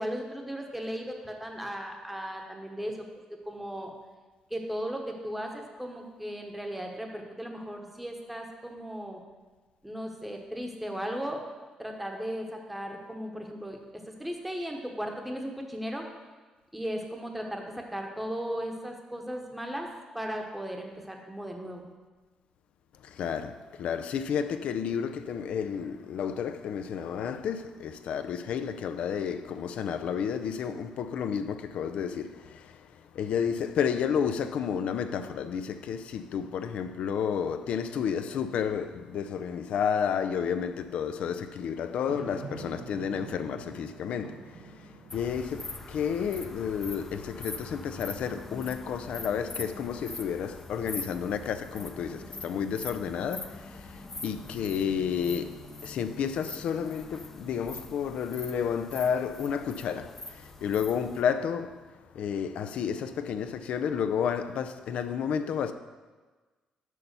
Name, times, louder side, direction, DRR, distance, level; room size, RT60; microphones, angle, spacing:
voice 1, 0.0-3.0 3.5-3.9 4.5-9.2 9.8-11.4 11.8-16.0 16.7-21.9, equal, 5° right, 1.0 m, -36 dB
voice 2, 23.0-61.9 62.1-65.7, left 7 dB, 70° left, 0.5 m, -31 dB
sound 1, 42.1-47.6 48.1-48.2 52.1-53.2, right 5 dB, 65° right, 0.8 m, -47 dB
sound 2, 45.1-61.2, left 2 dB, 20° left, 0.6 m, -43 dB
6.4 x 5.5 x 6.7 m
cardioid pair, 135°, 2 cm